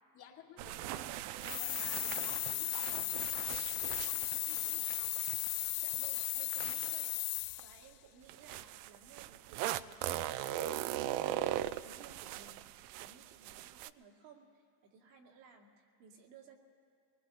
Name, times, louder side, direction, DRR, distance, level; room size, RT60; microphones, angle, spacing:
voice 1, 0.1-1.1 1.4-5.1, left 7 dB, 50° left, 0 dB, 2.3 m, -56 dB
sound 1, 0.6-7.6 8.3-13.9, right 13 dB, 55° right, 0.6 m, -40 dB
sound 2, 1.4-7.8, left 21 dB, 65° left, 0.5 m, -36 dB
voice 2, 5.8-7.2 7.6-10.5 10.7-16.6, right 6 dB, 80° right, 0 dB, 2.5 m, -58 dB
24.0 x 20.0 x 2.9 m, 2.3 s
supercardioid pair, 95°, 49 cm